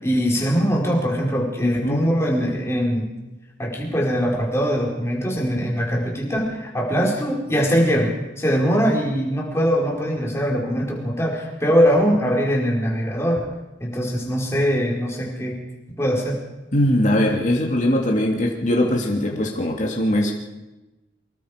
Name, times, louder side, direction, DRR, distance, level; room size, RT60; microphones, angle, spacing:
voice 1, 0.0-3.1 3.6-13.5 13.8-15.6 16.0-16.4, equal, 15° left, -2 dB, 4.6 m, -22 dB
voice 2, 1.6-2.1 16.7-20.3, left 1 dB, 40° left, 0 dB, 2.5 m, -21 dB
25.0 x 20.0 x 5.1 m, 1.1 s
head